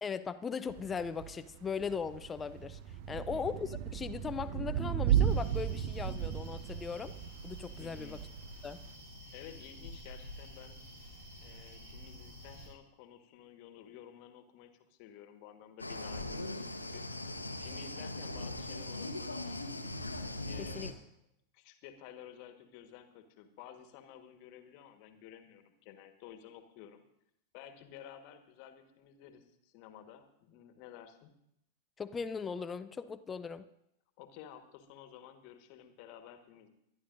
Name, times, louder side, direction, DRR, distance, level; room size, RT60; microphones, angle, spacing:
voice 1, 0.0-2.8 3.1-7.1 7.4-8.2 8.6-8.8 20.6-20.9 32.0-33.6, left 6 dB, 20° left, 11 dB, 0.5 m, -38 dB
Thunder / Rain, 0.7-8.9, right 10 dB, 45° right, 0.6 m, -35 dB
voice 2, 3.1-3.5 7.8-8.2 9.3-10.8 11.4-17.0 17.6-19.8 20.4-21.0 21.5-27.0 27.5-31.3 34.2-36.7, left 9 dB, 45° left, 8 dB, 1.4 m, -53 dB
sound 1, 5.1-12.7, left 1 dB, 75° right, 6.7 m, -50 dB
sound 2, 15.8-20.9, left 2 dB, 85° left, 1.0 m, -40 dB
24.5 x 10.5 x 2.6 m, 0.77 s
figure-of-eight pair, 90°, 0 cm